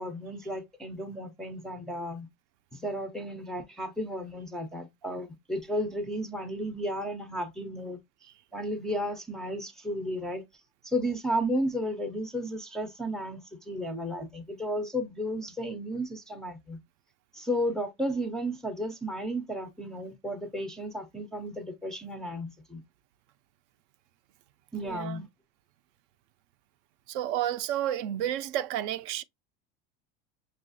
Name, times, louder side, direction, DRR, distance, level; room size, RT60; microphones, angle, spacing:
voice 1, 0.0-2.3 2.7-8.0 8.5-10.4 10.8-16.8 17.3-22.8 24.7-25.3, equal, ahead, 0.4 m, -33 dB
voice 2, 24.8-25.3 27.1-29.2, right 11 dB, 60° right, 0.4 m, -31 dB
6.2 x 2.3 x 2.5 m
supercardioid pair, 145°, 29 cm